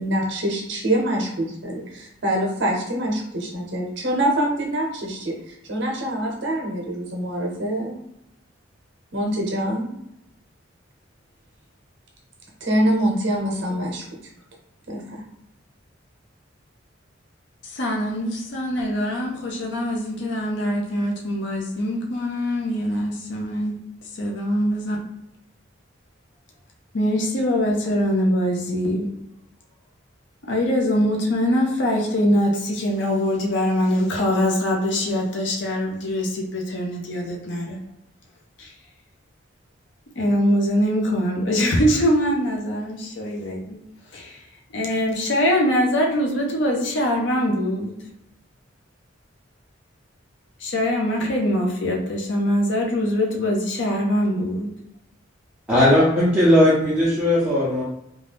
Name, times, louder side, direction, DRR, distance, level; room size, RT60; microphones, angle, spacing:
voice 1, 0.0-7.9 9.1-9.9 12.6-14.0 14.9-15.2, right 1 dB, 60° right, 0 dB, 0.7 m, -25 dB
voice 2, 17.7-23.7 24.2-25.0 26.9-29.0 30.5-37.8 38.6-38.7 40.2-43.8 44.1-44.4 44.7-47.9 50.6-54.7, equal, 60° left, 0 dB, 0.6 m, -23 dB
voice 3, 55.7-57.8, left 1 dB, 5° right, -9 dB, 0.5 m, -17 dB
2.6 x 2.3 x 3.3 m, 0.82 s
head